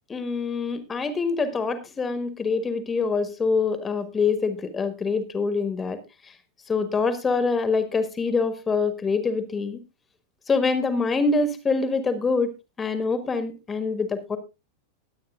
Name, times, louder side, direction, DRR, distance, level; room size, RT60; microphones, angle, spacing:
voice 1, 0.1-6.0 6.7-9.8 10.5-12.5 12.8-14.4, left 4 dB, 15° left, 11 dB, 1.5 m, -25 dB
21.0 x 8.6 x 2.4 m, 0.26 s
figure-of-eight pair, 90°, 0 cm